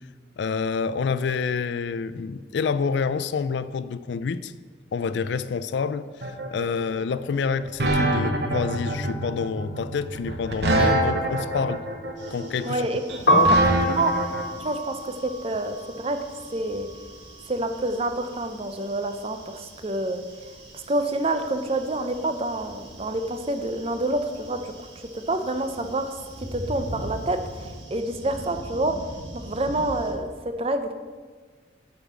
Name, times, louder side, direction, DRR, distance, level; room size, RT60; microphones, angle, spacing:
voice 1, 0.4-4.5 4.9-11.8 12.3-12.8 13.3-13.5 14.6-14.7, left 5 dB, 70° left, 15 dB, 0.3 m, -28 dB
sound 1, 6.2-14.4, right 2 dB, 65° right, 1.0 m, -25 dB
sound 2, 12.2-30.1, right 1 dB, 80° right, 1.8 m, -43 dB
voice 2, 12.6-13.2 13.9-14.1 14.6-16.2 16.5-16.9 17.5-20.2 20.7-26.1 26.5-29.0 29.5-30.3 30.6-30.9, right 2 dB, 30° right, 8 dB, 0.6 m, -28 dB
Piano, 13.1-19.1 19.3-20.9 21.2-27.6, right 1 dB, 50° left, 1.4 m, -28 dB
6.9 x 5.5 x 7.4 m, 1.5 s
head